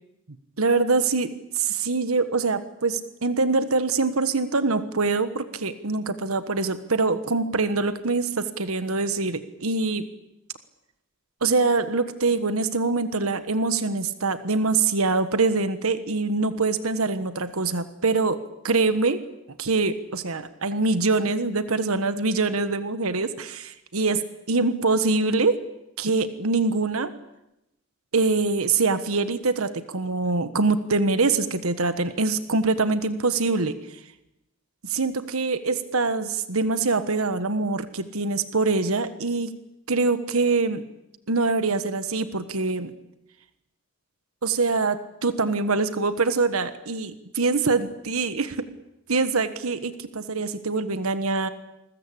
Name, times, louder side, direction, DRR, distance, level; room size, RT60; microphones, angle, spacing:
voice 1, 0.6-10.0 11.4-18.4 18.6-19.2 19.6-25.6 26.0-27.1 28.1-33.8 34.8-39.5 39.9-40.8 41.3-42.9 44.4-48.6 49.1-51.5, right 3 dB, 85° right, 11 dB, 1.4 m, -24 dB
28.0 x 22.0 x 8.6 m, 0.89 s
head